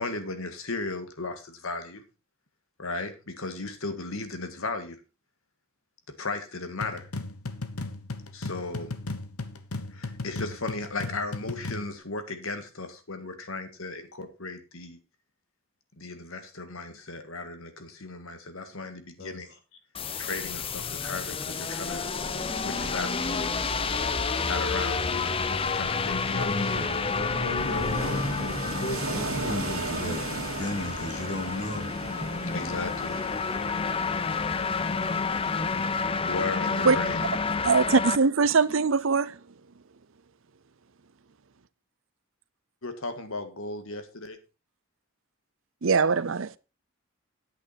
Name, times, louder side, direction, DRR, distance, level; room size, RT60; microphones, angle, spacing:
voice 1, 0.0-2.0 2.8-5.0 6.2-7.1 8.3-8.9 9.9-15.0 16.0-19.5 20.2-22.1 22.4-23.1 24.4-26.9 27.7-27.8 32.5-33.2 36.3-37.2 42.8-44.4, left 3 dB, 70° left, 1.8 m, -36 dB
sound 1, 6.8-11.9, left 2 dB, 90° left, 1.3 m, -36 dB
sound 2, 19.9-38.2, left 4 dB, 25° left, 0.5 m, -30 dB
sound 3, 21.8-36.0, right 2 dB, 80° right, 2.3 m, -38 dB
voice 2, 26.4-31.9, left 1 dB, 50° left, 2.3 m, -35 dB
voice 3, 37.6-39.4 45.8-46.5, right 4 dB, 65° right, 0.6 m, -22 dB
10.0 x 8.6 x 4.1 m
head